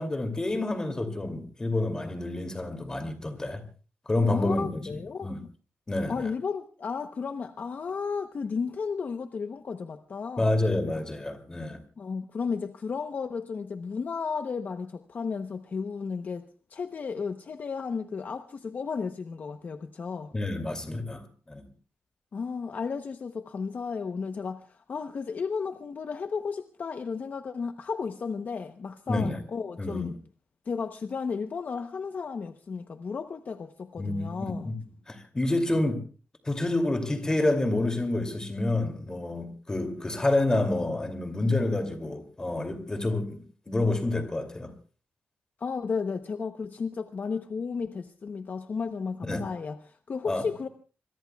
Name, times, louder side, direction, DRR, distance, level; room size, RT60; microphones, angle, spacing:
voice 1, 0.0-3.6 4.1-5.4 5.9-6.3 10.4-11.8 20.3-21.6 29.1-29.4 29.8-30.1 34.0-34.8 35.1-36.0 36.4-44.7 49.3-49.4 50.2-50.4, left 2 dB, 15° left, 2.6 m, -28 dB
voice 2, 4.3-5.3 6.1-10.6 12.0-20.3 22.3-30.1 30.7-34.7 45.6-50.7, left 5 dB, 45° left, 0.8 m, -33 dB
26.0 x 22.5 x 2.3 m
wide cardioid pair, 170°, 4 cm